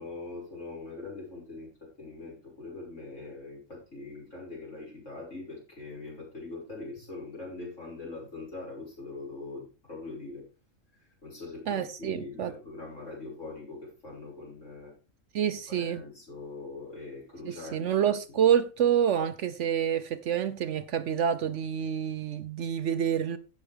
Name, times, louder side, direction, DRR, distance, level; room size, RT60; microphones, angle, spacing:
voice 1, 0.0-1.7 2.0-10.5 11.2-14.9 15.7-17.9, left 3 dB, 60° left, 6.5 m, -42 dB
voice 2, 11.7-12.5 15.3-16.0 17.4-23.4, right 9 dB, 65° right, 0.9 m, -27 dB
15.5 x 6.3 x 3.5 m
omnidirectional pair, 1.4 m